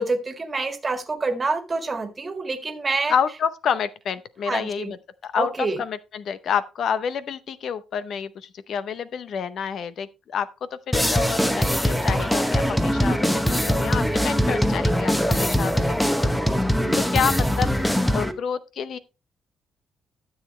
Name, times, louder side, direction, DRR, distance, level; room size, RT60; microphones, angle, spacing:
voice 1, 0.0-3.1 4.5-4.9 5.4-5.8 14.2-14.6 16.8-17.1, right 3 dB, 30° right, 1.8 m, -27 dB
voice 2, 3.1-5.0 5.2-5.5 5.8-16.7 16.9-19.0, left 7 dB, 65° left, 0.7 m, -29 dB
sound 1, 10.9-18.3, equal, 5° left, 1.1 m, -22 dB
13.0 x 7.2 x 3.1 m
cardioid pair, 90°, 0 cm